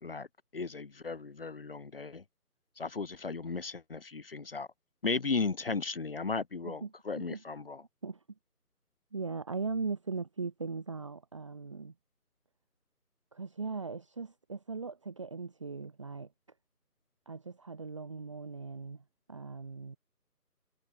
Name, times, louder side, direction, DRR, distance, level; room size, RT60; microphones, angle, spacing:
voice 1, 0.5-2.2 2.8-4.7 5.0-7.8, left 4 dB, 35° left, 4.0 m, -35 dB
voice 2, 6.6-7.4 8.0-8.2 9.1-11.9 13.3-16.3 17.3-20.0, right 4 dB, 20° right, 1.9 m, -39 dB
figure-of-eight pair, 170°, 48 cm